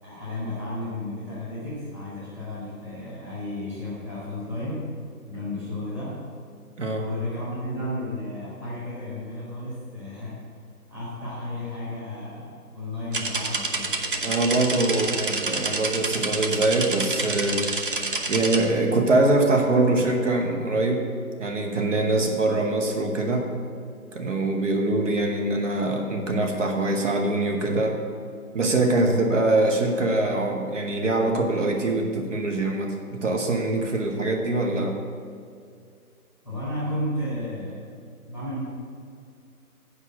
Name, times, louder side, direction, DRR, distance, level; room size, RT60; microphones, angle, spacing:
voice 1, 0.0-4.9 5.3-6.2 7.0-10.5 10.9-14.0 36.4-37.9 38.3-38.6, left 1 dB, 5° right, -9 dB, 1.1 m, -33 dB
sound 1, 13.1-18.7, right 3 dB, 35° right, 0.6 m, -28 dB
voice 2, 14.2-17.7 18.3-21.0 21.4-23.5 24.1-28.0 28.5-35.0, right 2 dB, 50° right, 2 dB, 1.1 m, -23 dB
8.0 x 5.0 x 7.3 m, 2.3 s
figure-of-eight pair, 150°, 45 cm